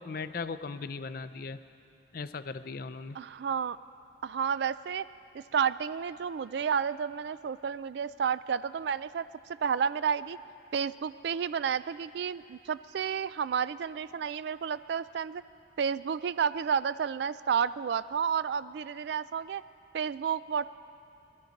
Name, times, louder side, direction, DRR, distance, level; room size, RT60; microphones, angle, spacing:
voice 1, 0.0-1.6 2.1-3.2, left 4 dB, 50° left, 13 dB, 0.4 m, -38 dB
voice 2, 3.1-3.8 4.2-5.0 5.3-9.3 9.6-10.4 10.7-15.4 15.8-19.6 19.9-20.7, right 7 dB, 60° right, 16 dB, 0.3 m, -31 dB
20.5 x 12.5 x 5.2 m, 2.6 s
head